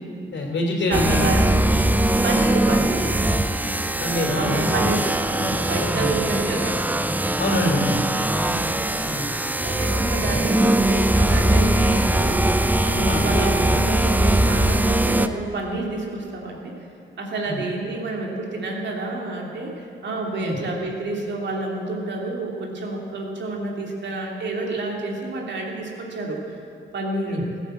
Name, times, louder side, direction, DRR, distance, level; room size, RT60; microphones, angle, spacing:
voice 1, 0.3-1.3 4.0-4.6 5.9-6.1 7.4-8.0 9.1-9.2 13.1-13.2 17.5-17.6 20.4-20.6 27.3-27.4, left 1 dB, 65° left, 1 dB, 3.3 m, -25 dB
sound 1, 0.9-15.3, right 1 dB, 10° right, 0.7 m, -21 dB
voice 2, 0.9-1.9 2.2-3.2 4.2-6.8 8.4-8.8 9.6-16.8 17.2-26.6 26.9-27.5, right 2 dB, 65° right, 0 dB, 2.9 m, -29 dB
16.0 x 9.9 x 7.8 m, 2.5 s
cardioid pair, 70°, 20 cm